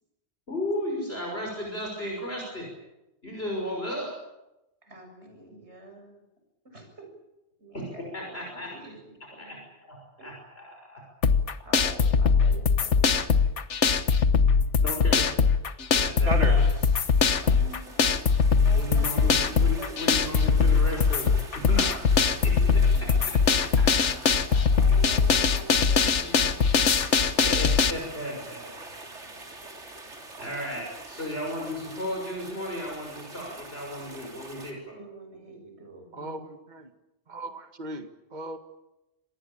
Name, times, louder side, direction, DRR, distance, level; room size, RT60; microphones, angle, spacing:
voice 1, 0.5-2.7 3.2-4.1 7.7-7.8 8.1-8.7 9.4-11.0 14.8-15.3 15.9-16.9 18.7-23.1 24.0-24.3 27.5-28.8 30.4-35.0, equal, 60° left, 0 dB, 6.4 m, -35 dB
voice 2, 4.8-6.2 6.6-7.1 7.6-9.6 10.2-10.3 11.6-13.1 17.4-20.6 23.0-23.3 24.8-26.7 34.9-36.5, right 1 dB, 70° right, 4 dB, 7.4 m, -46 dB
sound 1, 11.2-27.9, left 5 dB, 90° left, 1.5 m, -22 dB
sound 2, 16.2-34.7, right 2 dB, 90° right, 3.6 m, -42 dB
voice 3, 36.1-36.9 37.3-38.6, right 1 dB, 40° right, 7 dB, 1.9 m, -39 dB
26.5 x 20.0 x 8.8 m, 0.96 s
omnidirectional pair, 1.2 m